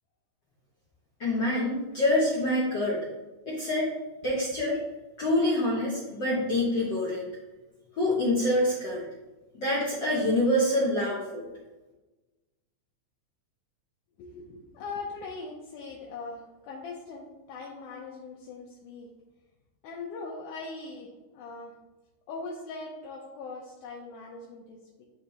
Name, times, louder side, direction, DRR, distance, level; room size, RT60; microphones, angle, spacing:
voice 1, 1.2-3.0 3.5-3.9 4.2-4.8 5.2-7.3 8.0-9.0 9.5-11.5, left 1 dB, 60° left, -7 dB, 1.1 m, -26 dB
voice 2, 14.2-19.1 19.8-21.7 22.3-25.0, left 3 dB, 85° left, -3 dB, 2.2 m, -41 dB
10.0 x 3.4 x 2.8 m, 1.1 s
omnidirectional pair, 3.6 m